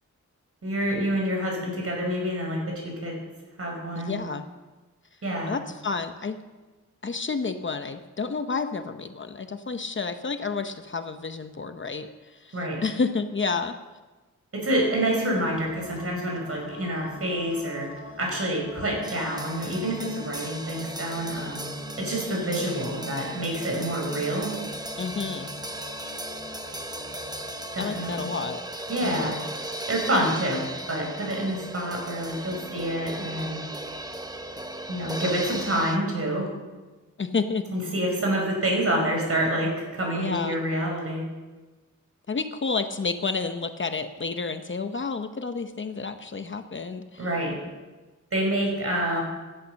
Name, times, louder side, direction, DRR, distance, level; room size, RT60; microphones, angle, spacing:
voice 1, 0.6-3.2 3.6-4.2 5.2-5.5 12.5-12.8 14.5-17.9 18.2-21.7 22.0-24.5 27.7-28.3 28.9-29.4 29.9-30.6 30.9-33.6 34.9-36.5 37.7-41.2 47.2-47.6 48.3-49.2, right 1 dB, 50° right, 0 dB, 5.6 m, -27 dB
voice 2, 4.0-4.4 5.5-6.4 7.0-13.8 25.0-25.5 27.8-28.6 29.0-29.4 37.2-37.7 40.1-40.6 42.3-47.3, left 4 dB, 40° left, 8 dB, 0.8 m, -30 dB
sound 1, 14.7-28.3, left 2 dB, 60° left, 3.0 m, -43 dB
sound 2, 19.0-36.0, right 1 dB, 15° right, 0.9 m, -37 dB
16.5 x 11.5 x 6.4 m, 1.2 s
wide cardioid pair, 170°, 31 cm